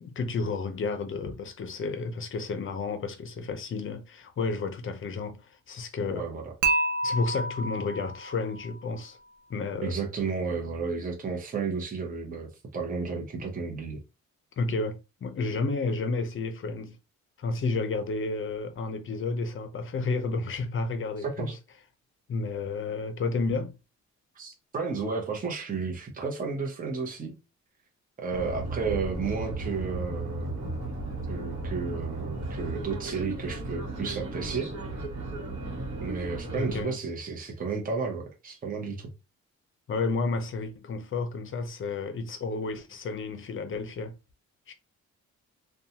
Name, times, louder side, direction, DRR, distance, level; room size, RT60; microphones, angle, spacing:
voice 1, 0.0-6.2 7.0-9.2 9.5-10.0 14.6-17.0 17.4-21.5 22.3-23.7 36.6-37.0 39.9-44.1 44.7-44.8, left 3 dB, 45° left, 0.6 m, -31 dB
voice 2, 6.1-6.4 9.8-14.0 21.2-21.6 24.4-27.4 28.2-30.6 31.3-34.7 36.0-39.1, right 4 dB, 30° right, 0.7 m, -32 dB
Dishes pots and pans / Chink clink, 6.6-8.7, right 3 dB, 85° right, 0.5 m, -29 dB
sound 1, 28.3-36.8, right 2 dB, 70° right, 1.0 m, -35 dB
2.6 x 2.2 x 2.8 m
cardioid pair, 115°, 29 cm